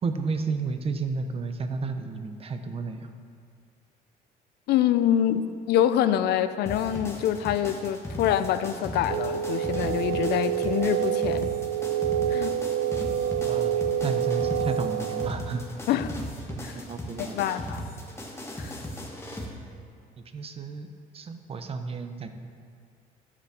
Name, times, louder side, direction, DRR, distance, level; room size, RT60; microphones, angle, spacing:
voice 1, 0.0-3.1 13.4-15.6 15.9-16.0 16.5-17.4 20.3-20.9 21.1-22.3, right 4 dB, 35° right, 7 dB, 0.8 m, -32 dB
voice 2, 4.7-11.5 12.3-12.5 15.9-16.2 16.6-16.7 17.3-17.8 18.6-18.8, left 10 dB, 75° left, 11 dB, 0.5 m, -25 dB
sound 1, 6.7-19.5, left 1 dB, 15° left, 1.5 m, -37 dB
sound 2, 9.1-15.3, right 9 dB, 85° right, 0.6 m, -27 dB
10.5 x 5.1 x 7.0 m, 2.3 s
cardioid pair, 110°, 17 cm